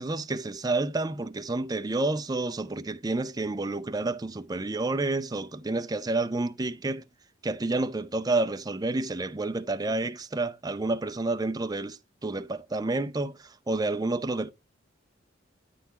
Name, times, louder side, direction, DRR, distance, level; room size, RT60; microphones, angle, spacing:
voice 1, 0.0-7.0 7.4-13.3 13.7-14.5, right 2 dB, 20° right, 0.5 m, -29 dB
9.2 x 3.9 x 4.1 m
head